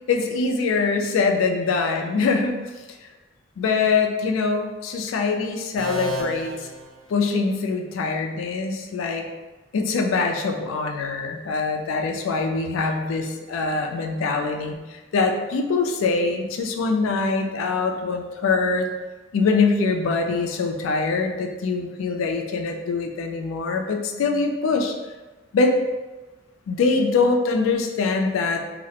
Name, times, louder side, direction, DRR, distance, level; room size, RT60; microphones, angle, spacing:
voice 1, 0.1-2.6 3.6-6.7 7.1-9.3 9.7-18.9 19.3-24.9 25.5-25.8 26.7-28.6, left 4 dB, 80° left, 3 dB, 0.3 m, -23 dB
sound 1, 5.8-7.7, right 1 dB, ahead, 0.4 m, -33 dB
2.4 x 2.0 x 2.7 m, 1.2 s
head